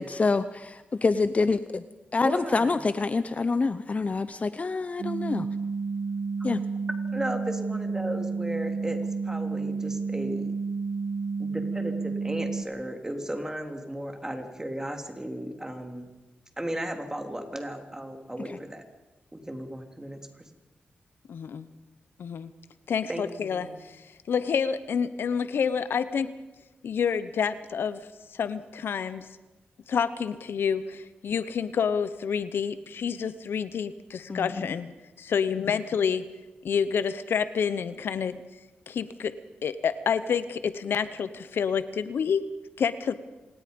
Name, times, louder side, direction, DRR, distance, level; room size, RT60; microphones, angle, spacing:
voice 1, 0.0-1.8 2.1-5.5 6.4-6.6 34.3-34.7, left 4 dB, 40° left, 13 dB, 0.7 m, -26 dB
voice 2, 2.2-2.8 7.1-10.5 11.4-16.1 16.6-18.8 19.3-20.5 23.1-23.8, right 1 dB, 15° right, 5 dB, 3.1 m, -35 dB
sound 1, 5.0-12.6, right 4 dB, 75° right, 2.0 m, -31 dB
voice 3, 21.3-21.7 22.2-22.5 22.9-24.0 24.3-26.3 26.8-29.3 29.9-34.9 35.2-36.2 36.6-38.3 38.9-39.3 39.6-42.4 42.8-43.2, left 7 dB, 80° left, 13 dB, 0.9 m, -28 dB
27.0 x 18.0 x 5.3 m, 1.1 s
cardioid pair, 70°, 4 cm